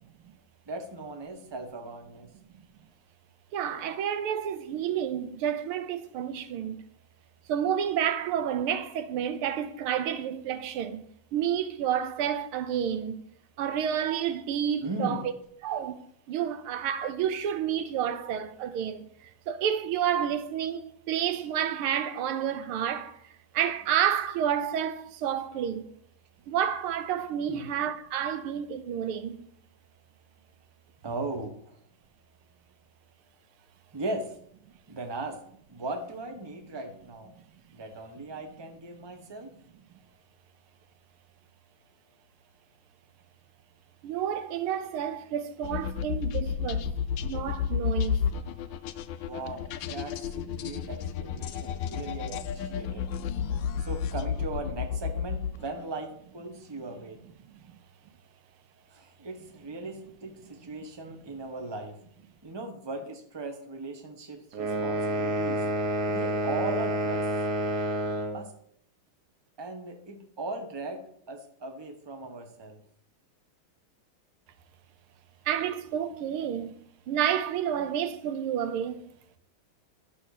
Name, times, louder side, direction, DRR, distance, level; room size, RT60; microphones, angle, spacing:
voice 1, 0.7-2.3 14.8-15.2 27.5-27.7 31.0-31.7 33.9-34.3 34.9-35.4 35.7-37.3 37.7-39.5 49.3-53.1 53.8-57.2 58.9-62.0 62.4-65.6 66.1-67.3 68.3-68.5 69.6-72.8, right 2 dB, 15° right, 1.0 m, -38 dB
voice 2, 3.5-6.8 7.5-11.0 11.3-13.2 13.6-15.2 15.6-25.9 26.5-29.5 44.0-46.9 47.2-48.2 50.6-50.7 51.5-51.7 56.7-56.9 57.5-57.6 75.5-76.8 77.1-79.1, right 9 dB, 85° right, 1.7 m, -30 dB
sound 1, 45.6-55.8, left 7 dB, 70° left, 1.2 m, -32 dB
sound 2, 64.5-68.4, right 1 dB, 55° right, 1.7 m, -29 dB
11.0 x 5.7 x 6.6 m
omnidirectional pair, 2.3 m